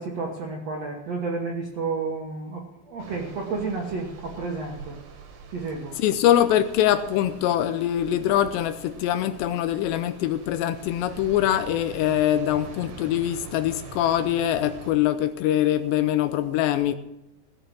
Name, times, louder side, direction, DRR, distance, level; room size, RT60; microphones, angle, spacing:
voice 1, 0.0-5.0 5.5-6.0, right 4 dB, 80° right, 0 dB, 1.4 m, -31 dB
sound 1, 3.0-14.9, right 5 dB, 60° right, 2.5 m, -44 dB
voice 2, 5.9-17.0, left 11 dB, 85° left, 10 dB, 2.6 m, -23 dB
17.5 x 6.8 x 7.6 m, 0.92 s
omnidirectional pair, 5.4 m